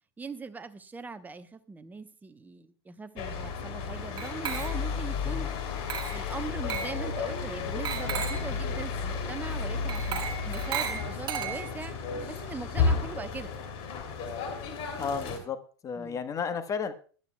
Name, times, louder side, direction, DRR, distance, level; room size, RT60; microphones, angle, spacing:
voice 1, 0.2-5.5 6.1-13.5 16.0-16.2, right 4 dB, 10° right, 10 dB, 1.0 m, -41 dB
sound 1, 3.2-15.4, left 5 dB, 45° left, 3.0 m, -33 dB
Glass, 4.2-5.0 5.9-6.3 6.7-7.0 7.9-8.5 9.9-11.9, right 7 dB, 35° right, 2.0 m, -35 dB
voice 2, 15.0-15.6 15.8-16.9, left 6 dB, 25° left, 9 dB, 1.3 m, -32 dB
19.5 x 12.0 x 2.3 m, 0.40 s
figure-of-eight pair, 95°, 14 cm